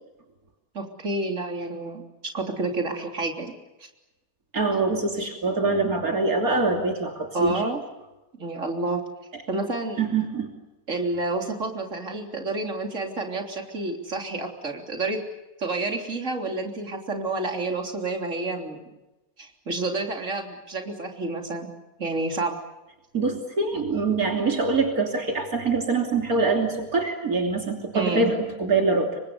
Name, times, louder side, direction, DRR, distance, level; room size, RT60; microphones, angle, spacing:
voice 1, 0.7-2.0 2.3-3.5 3.8-3.9 7.3-7.8 8.4-9.0 9.5-10.0 10.9-15.2 15.6-18.9 19.4-21.7 22.0-22.6 27.9-28.3, right 2 dB, 55° right, 3 dB, 3.9 m, -29 dB
voice 2, 4.5-7.6 10.0-10.5 23.1-29.2, right 3 dB, 75° right, 2 dB, 3.5 m, -24 dB
29.0 x 25.0 x 6.9 m, 1.0 s
omnidirectional pair, 1.5 m